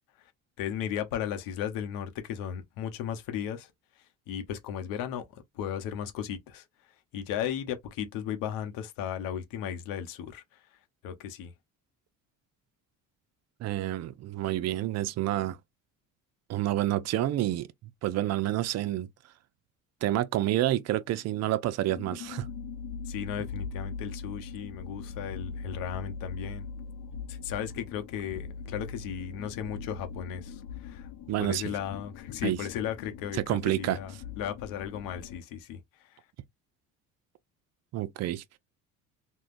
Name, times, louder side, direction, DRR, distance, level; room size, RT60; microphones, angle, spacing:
voice 1, 0.6-3.7 4.3-6.6 7.1-10.4 11.0-11.5 23.1-26.6 27.3-31.1 31.4-35.8, left 9 dB, 85° left, 0.8 m, -35 dB
voice 2, 13.6-15.6 16.5-17.7 18.0-19.1 20.0-22.5 31.3-31.6 32.4-32.6 33.3-34.0 37.9-38.6, right 14 dB, 55° right, 0.5 m, -28 dB
sound 1, 21.9-35.4, left 5 dB, 65° left, 0.5 m, -41 dB
3.6 x 2.2 x 2.5 m
cardioid pair, 115°, 33 cm